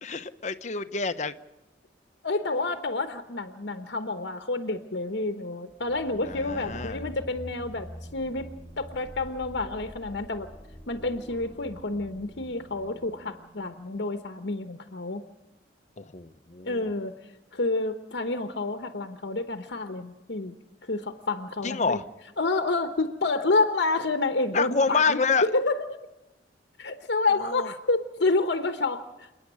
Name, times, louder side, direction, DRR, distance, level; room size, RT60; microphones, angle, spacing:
voice 1, 0.0-1.3 6.3-7.0 16.0-16.9 21.6-22.0 24.5-25.5 27.4-27.7, left 4 dB, 40° left, 11 dB, 0.8 m, -27 dB
voice 2, 2.2-10.5 10.9-15.2 16.7-17.1 17.5-20.6 20.9-22.0 22.4-25.9 26.8-29.4, left 3 dB, 70° left, 7 dB, 1.0 m, -29 dB
sound 1, 5.7-14.3, right 1 dB, 20° right, 7.3 m, -45 dB
28.5 x 9.6 x 9.9 m, 1.0 s
head